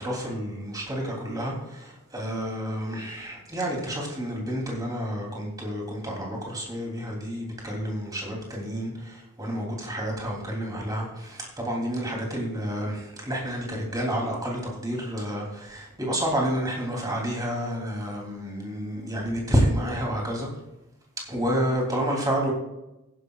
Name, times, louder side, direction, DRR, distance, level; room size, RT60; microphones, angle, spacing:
voice 1, 0.0-20.5 21.3-22.5, equal, 15° right, -1 dB, 3.2 m, -29 dB
15.0 x 11.0 x 2.5 m, 0.93 s
head